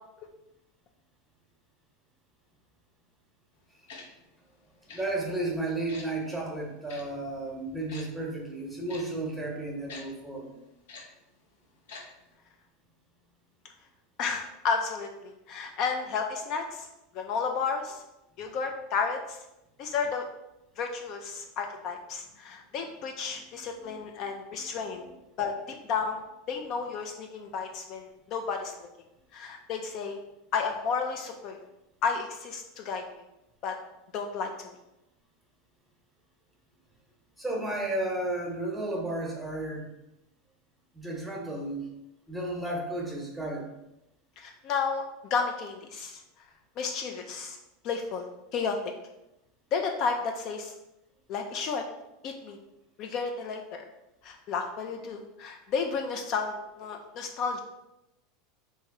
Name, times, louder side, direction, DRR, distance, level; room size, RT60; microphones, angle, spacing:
Tick-tock, 3.9-4.0 4.9-5.0 5.9-6.1 6.9-7.0 7.9-8.0 8.9-9.0 9.9-10.0 10.9-11.0 11.9-12.0 12.3-12.4, left 4 dB, 80° left, 0.7 m, -44 dB
voice 1, 4.9-10.5 23.3-23.4 23.8-24.0 24.5-25.1 37.4-39.9 40.9-41.9 42.3-43.7, right 2 dB, ahead, -1 dB, 0.9 m, -33 dB
voice 2, 14.2-16.9 17.1-18.0 18.4-19.4 19.8-20.2 20.8-25.0 25.4-26.2 26.5-28.7 29.3-30.2 30.5-31.6 32.0-33.0 33.6-33.7 34.1-34.5 44.4-46.2 46.8-47.6 47.8-48.8 49.7-50.7 51.3-51.8 52.2-52.6 53.0-53.6 54.2-57.6, left 5 dB, 50° left, 4 dB, 0.4 m, -32 dB
3.0 x 2.6 x 3.7 m, 0.92 s
supercardioid pair, 115°, 0 cm